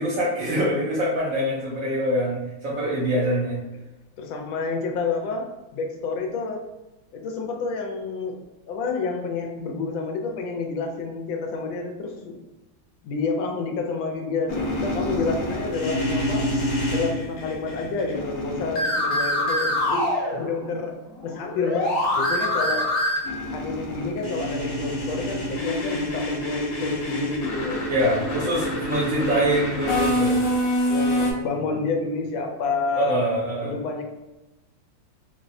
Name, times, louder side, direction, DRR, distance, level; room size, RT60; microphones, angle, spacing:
voice 1, 0.0-3.6 27.9-30.3 33.0-33.7, equal, 65° right, -5 dB, 0.8 m, -24 dB
voice 2, 4.2-6.6 7.1-8.4 8.7-12.4 13.0-16.5 16.9-21.0 21.2-22.9 23.5-27.8 28.4-28.6 30.9-33.2 33.6-34.0, left 4 dB, 85° left, 2 dB, 1.4 m, -29 dB
sound 1, 14.5-20.8 21.1-31.3, left 1 dB, 60° left, 1.1 m, -26 dB
4.0 x 2.0 x 2.6 m, 1.0 s
omnidirectional pair, 2.1 m